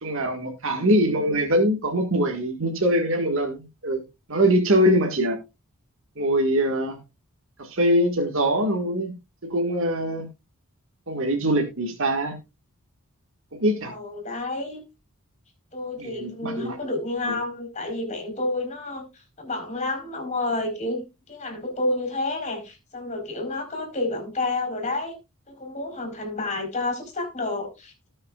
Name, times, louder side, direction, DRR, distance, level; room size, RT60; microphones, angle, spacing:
voice 1, 0.0-4.0 4.3-5.4 6.2-7.0 7.6-9.1 9.4-10.3 11.1-12.4 13.5-13.9 16.0-16.8 17.3-17.4, equal, 65° right, 2 dB, 1.9 m, -23 dB
voice 2, 0.6-1.3 13.8-14.8 15.7-25.2 25.5-28.1, left 2 dB, 35° left, 3 dB, 4.5 m, -30 dB
18.5 x 6.5 x 2.5 m, 0.25 s
head